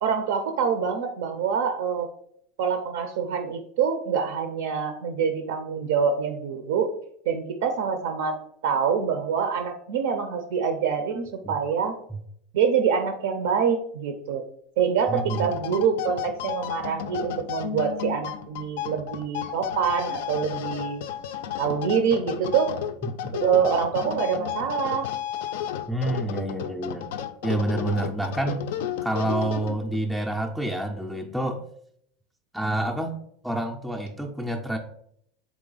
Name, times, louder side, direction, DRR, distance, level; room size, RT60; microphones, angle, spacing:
voice 1, 0.0-2.1 2.6-6.9 7.3-8.4 8.6-12.0 12.5-14.4 14.8-21.0 21.6-22.7 23.3-25.1, right 6 dB, 80° right, 6 dB, 0.5 m, -25 dB
sound 1, 15.1-30.0, left 10 dB, 75° left, 0.3 m, -33 dB
voice 2, 15.1-15.4 23.0-23.3 25.9-27.1 27.4-28.7 29.0-31.6 32.5-33.1 33.4-34.8, right 2 dB, ahead, 1 dB, 0.3 m, -28 dB
3.8 x 3.0 x 3.8 m, 0.68 s
supercardioid pair, 155°, 0 cm